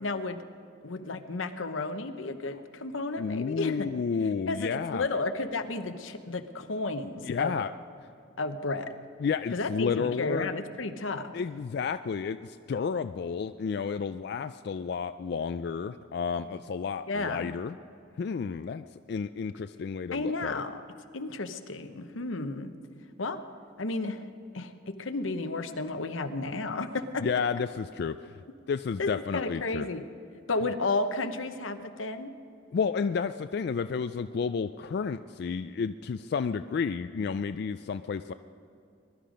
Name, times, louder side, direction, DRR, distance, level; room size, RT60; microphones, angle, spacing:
voice 1, 0.0-0.4 0.8-3.9 4.5-7.6 8.4-9.0 9.5-11.3 17.1-17.5 20.1-20.8 21.1-22.7 23.2-23.4 23.8-24.3 24.5-27.2 29.0-30.0 30.5-32.3, left 3 dB, 90° left, 8 dB, 1.0 m, -32 dB
voice 2, 3.2-5.1 7.2-7.7 9.2-10.5 11.3-17.8 18.2-20.6 27.2-28.4 28.7-29.9 32.7-38.3, left 5 dB, 55° left, 10 dB, 0.3 m, -31 dB
21.5 x 12.0 x 5.2 m, 2.6 s
head